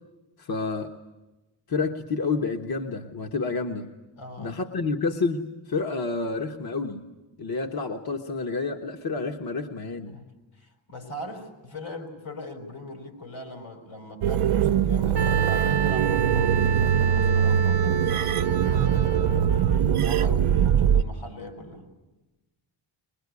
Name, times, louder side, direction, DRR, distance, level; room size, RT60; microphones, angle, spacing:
voice 1, 0.4-0.9 1.7-3.9 4.4-7.0 7.4-10.2, left 4 dB, 45° left, 3 dB, 1.3 m, -29 dB
voice 2, 4.2-4.6 10.1-10.3 10.6-16.6 17.0-21.9, left 1 dB, 80° left, 4 dB, 5.4 m, -40 dB
sound 1, 14.2-21.0, right 8 dB, 75° right, 0.8 m, -22 dB
Wind instrument woodwind instrument, 15.2-19.8, right 8 dB, 55° right, 1.1 m, -30 dB
22.0 x 22.0 x 9.7 m, 1.1 s
wide cardioid pair, 120°, 50 cm